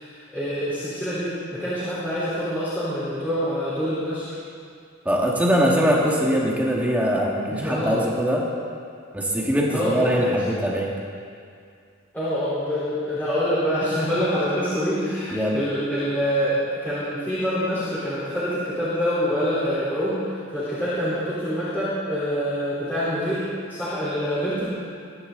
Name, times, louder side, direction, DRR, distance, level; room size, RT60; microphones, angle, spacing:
voice 1, 0.0-4.3 7.5-8.0 9.7-10.3 12.1-24.7, equal, 10° left, -14 dB, 4.2 m, -26 dB
voice 2, 5.1-8.4 9.1-10.9 15.3-15.6, equal, 5° right, -3 dB, 2.0 m, -22 dB
22.5 x 11.5 x 4.0 m, 2.3 s
head